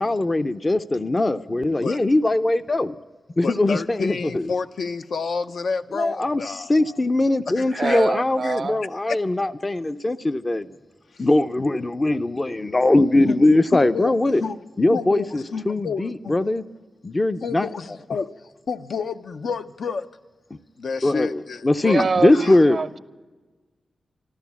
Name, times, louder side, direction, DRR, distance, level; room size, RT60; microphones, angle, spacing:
voice 1, 0.0-2.9 3.4-4.5 5.9-10.7 11.2-14.4 14.8-16.6 17.0-17.7 21.0-22.8, left 2 dB, 30° left, 0.5 m, -21 dB
voice 2, 3.4-7.0 7.5-8.1 8.4-8.6 9.1-9.2 11.1-11.2 13.2-13.4 13.7-14.1 14.4-14.6 14.9-16.4 17.4-18.3 18.7-20.1 20.8-22.0 22.3-22.6, left 5 dB, 70° left, 0.6 m, -30 dB
voice 3, 7.7-8.8 21.9-23.0, right 4 dB, 50° right, 0.5 m, -25 dB
13.5 x 13.0 x 7.1 m
cardioid pair, 80°, 0 cm